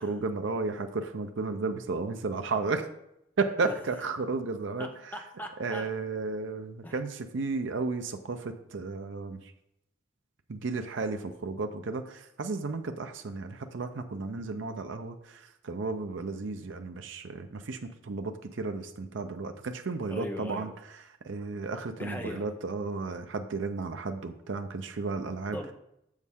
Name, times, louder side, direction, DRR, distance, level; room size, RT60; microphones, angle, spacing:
voice 1, 0.0-2.8 3.4-4.9 5.6-9.4 10.5-20.7 21.2-25.6, right 3 dB, 75° right, 7 dB, 0.5 m, -33 dB
voice 2, 4.8-5.9 6.8-7.0 20.1-20.7 22.0-22.5 25.5-25.7, left 1 dB, 10° left, 3 dB, 0.7 m, -39 dB
7.2 x 6.4 x 3.6 m, 0.80 s
head